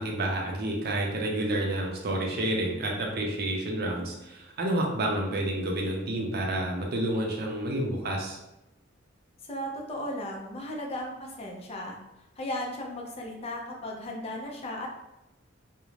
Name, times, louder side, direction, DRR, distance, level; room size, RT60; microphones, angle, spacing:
voice 1, 0.0-8.4, right 1 dB, 55° right, 0 dB, 0.5 m, -29 dB
voice 2, 9.4-12.0 12.4-14.9, left 1 dB, 30° left, 0 dB, 0.5 m, -36 dB
2.4 x 2.1 x 3.1 m, 0.96 s
head